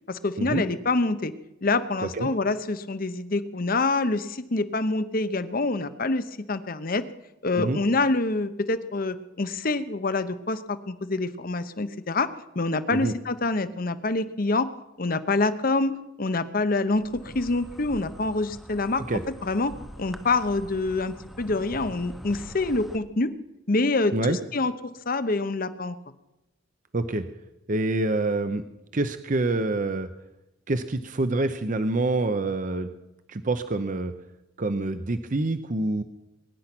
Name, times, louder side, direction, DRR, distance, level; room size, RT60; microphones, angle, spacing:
voice 1, 0.1-1.3 1.6-7.1 7.4-14.7 15.0-19.0 19.4-23.3 23.7-24.7 25.1-26.0, left 3 dB, 45° left, 12 dB, 0.9 m, -26 dB
Insect, 16.9-23.0, equal, ahead, 0.8 m, -44 dB
voice 2, 26.9-27.3 27.7-28.6 28.9-30.1 30.7-32.9 33.3-34.1 34.6-36.0, right 2 dB, 40° right, 10 dB, 0.7 m, -26 dB
22.5 x 10.0 x 6.1 m, 0.95 s
head